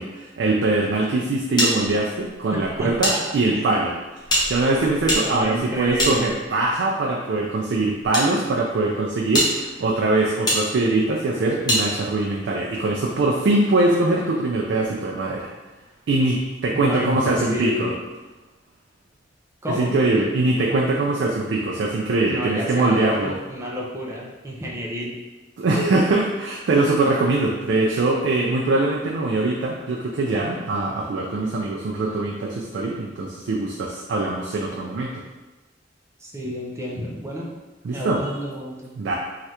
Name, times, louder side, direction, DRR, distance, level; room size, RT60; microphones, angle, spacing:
voice 1, 0.0-3.9 4.5-15.5 16.1-17.9 19.7-23.4 25.6-35.2 37.8-38.2 39.0-39.1, right 2 dB, 70° right, -1 dB, 0.4 m, -22 dB
sound 1, 1.6-3.2 3.4-3.5 4.2-6.7 7.5-8.3 8.8-8.9 9.3-9.5 10.5-10.6 11.7-11.8, equal, 25° left, 0.8 m, -24 dB
voice 2, 2.8-3.2 3.5-3.7 5.2-6.3 16.7-17.9 19.6-19.9 22.3-25.2 36.2-37.5 37.9-38.9, equal, 15° right, -3 dB, 0.5 m, -29 dB
3.2 x 2.4 x 2.8 m, 1.2 s
head